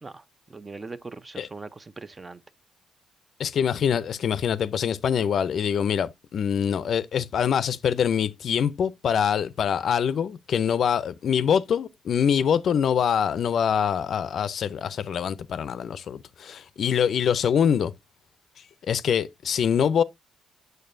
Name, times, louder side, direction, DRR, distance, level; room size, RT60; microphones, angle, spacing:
voice 1, 0.0-2.4, right 3 dB, 25° right, 0.5 m, -41 dB
voice 2, 3.4-17.9 18.9-20.0, left 8 dB, 60° left, 0.5 m, -24 dB
6.7 x 6.5 x 2.5 m
cardioid pair, 90°, 0 cm